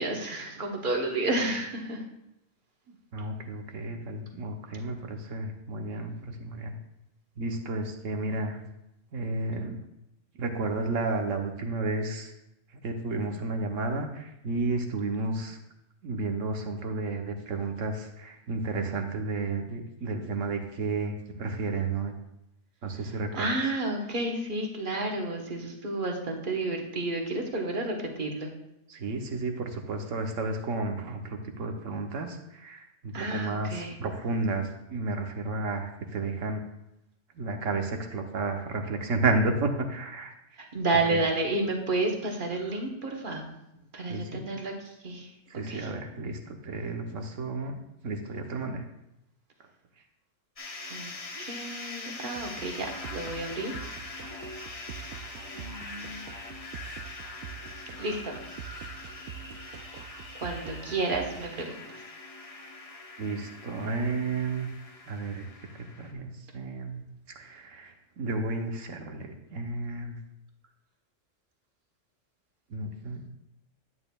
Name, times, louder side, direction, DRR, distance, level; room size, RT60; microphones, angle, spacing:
voice 1, 0.0-2.0 23.0-28.5 33.1-34.0 40.6-43.4 43.9-45.3 45.7-45.9 50.9-53.8 55.5-56.2 58.0-58.4 60.3-62.0, right 2 dB, 45° right, 1 dB, 1.3 m, -31 dB
voice 2, 3.1-6.7 7.4-8.6 9.1-9.8 10.4-12.3 12.7-15.6 16.0-21.1 21.4-22.1 22.8-23.4 28.9-36.6 37.3-40.3 41.1-41.2 44.1-44.4 45.5-48.8 63.2-64.7 65.1-65.5 65.7-67.0 67.3-70.2 72.7-73.3, right 3 dB, 85° right, 4 dB, 1.3 m, -32 dB
sound 1, 50.6-66.1, left 3 dB, 30° left, 0.9 m, -43 dB
sound 2, 52.4-61.6, right 10 dB, 65° right, 0.7 m, -45 dB
11.0 x 8.7 x 2.3 m, 0.86 s
omnidirectional pair, 1.3 m